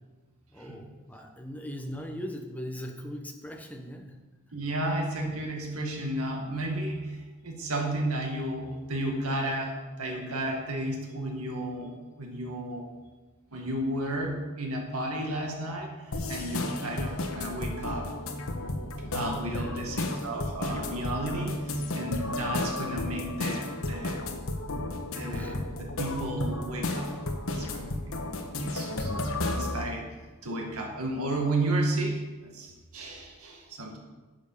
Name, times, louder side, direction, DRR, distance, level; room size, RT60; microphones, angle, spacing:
voice 1, 0.5-4.2 19.4-20.1 25.3-25.7, equal, 5° left, 3 dB, 1.0 m, -40 dB
voice 2, 4.5-12.9 13.5-18.1 19.1-24.2 25.1-30.0 30.4-34.0, right 1 dB, 85° right, 1 dB, 1.9 m, -33 dB
sound 1, 16.1-29.8, left 2 dB, 70° left, 1.2 m, -33 dB
10.5 x 7.3 x 5.7 m, 1.2 s
head